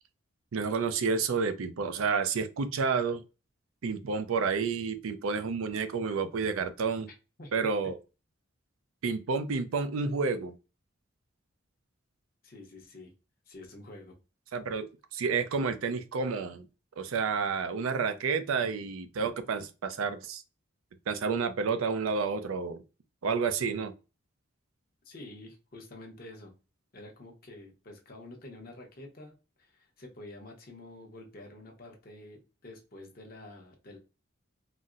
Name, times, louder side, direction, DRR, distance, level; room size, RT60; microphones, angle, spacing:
voice 1, 0.5-3.2 3.8-7.1 7.5-8.0 9.0-10.6 14.5-14.9 15.1-16.7 17.0-20.4 21.1-22.8 23.2-23.9, right 5 dB, 90° right, 0.4 m, -30 dB
voice 2, 12.4-13.1 13.5-14.2 25.0-26.5 26.9-34.0, left 2 dB, 45° left, 0.8 m, -48 dB
4.0 x 2.0 x 2.4 m
head